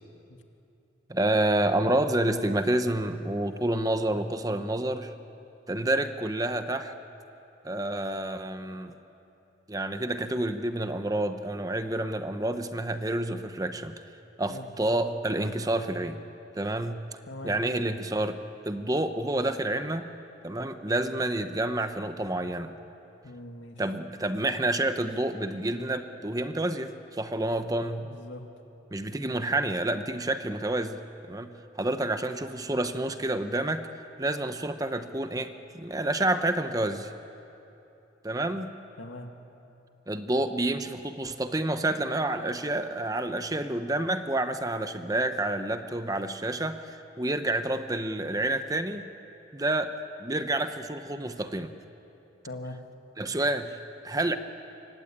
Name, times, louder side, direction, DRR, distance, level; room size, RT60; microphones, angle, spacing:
voice 1, 1.1-5.1 5.7-6.9 7.6-8.9 9.7-14.0 14.4-16.2 16.5-17.0 17.4-20.1 20.4-22.7 23.8-28.1 28.9-31.0 31.2-33.9 34.2-37.1 38.2-38.7 40.1-49.1 49.5-49.9 50.2-51.7 53.2-53.8 54.0-54.4, right 1 dB, 20° right, 9 dB, 0.9 m, -29 dB
voice 2, 23.2-23.8 28.0-28.4 39.0-39.3 52.4-52.8, left 1 dB, 85° left, 4 dB, 2.2 m, -41 dB
27.5 x 24.0 x 8.7 m, 2.9 s
head